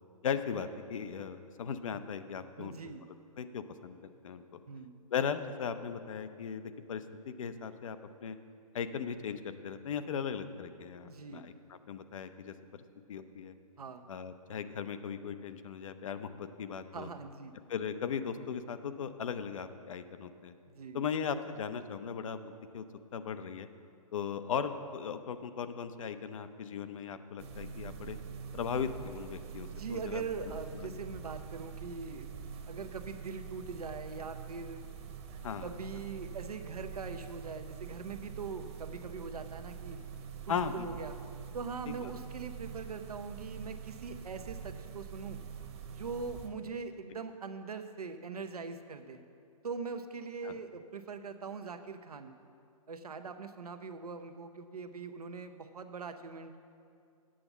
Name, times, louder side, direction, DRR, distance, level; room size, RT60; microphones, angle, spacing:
voice 1, 0.2-2.8 3.4-4.0 4.2-4.6 5.1-8.4 8.7-11.5 11.9-12.8 13.1-13.5 14.1-17.1 17.7-20.5 20.9-22.8 23.1-23.7 24.1-28.2 28.5-30.2 30.7-30.9 35.4-35.7 40.5-40.9 41.9-42.1 50.4-50.6, left 7 dB, 60° left, 10 dB, 0.7 m, -37 dB
voice 2, 2.6-3.0 4.7-5.0 11.0-11.5 13.8-14.1 16.9-17.5 20.7-21.0 29.7-32.3 32.7-34.8 35.6-40.0 40.7-41.2 41.5-45.4 45.9-49.2 49.6-52.3 52.9-56.6, right 5 dB, 85° right, 7 dB, 0.8 m, -42 dB
sound 1, 27.4-46.5, right 7 dB, 45° right, 1.2 m, -45 dB
8.7 x 6.9 x 7.2 m, 2.4 s
hypercardioid pair, 140°, 19 cm